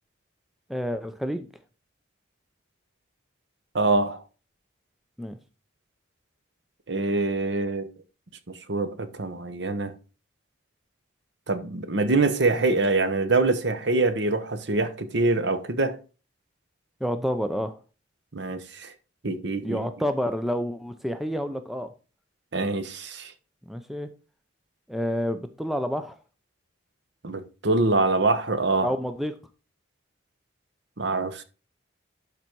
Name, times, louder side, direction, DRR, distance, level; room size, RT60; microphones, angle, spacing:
voice 1, 0.7-1.5 5.2-5.4 17.0-17.7 19.6-21.9 23.7-24.1 24.9-26.1 28.8-29.3, equal, ahead, 0.5 m, -29 dB
voice 2, 3.7-4.2 6.9-7.9 8.5-9.9 11.5-16.0 18.3-18.9 19.2-19.9 22.5-23.3 27.2-28.9 31.0-31.4, right 3 dB, 60° right, 1.0 m, -25 dB
12.0 x 4.0 x 4.6 m
head